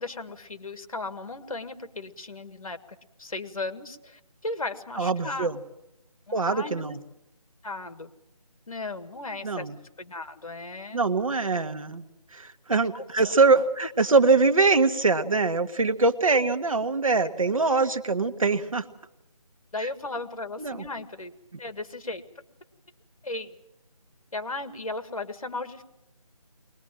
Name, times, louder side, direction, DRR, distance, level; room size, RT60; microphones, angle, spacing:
voice 1, 0.0-2.8 3.2-5.5 6.3-6.8 7.6-8.1 8.7-9.7 10.0-11.0 12.9-13.3 19.7-21.3 21.6-22.2 23.2-23.5 24.3-25.8, left 2 dB, 60° left, 10 dB, 1.8 m, -36 dB
voice 2, 5.0-5.6 6.3-7.0 9.4-9.7 10.9-12.0 12.3-18.8 20.6-20.8, right 4 dB, 60° right, 8 dB, 1.5 m, -23 dB
22.5 x 20.0 x 7.5 m, 0.89 s
figure-of-eight pair, 170°, 20 cm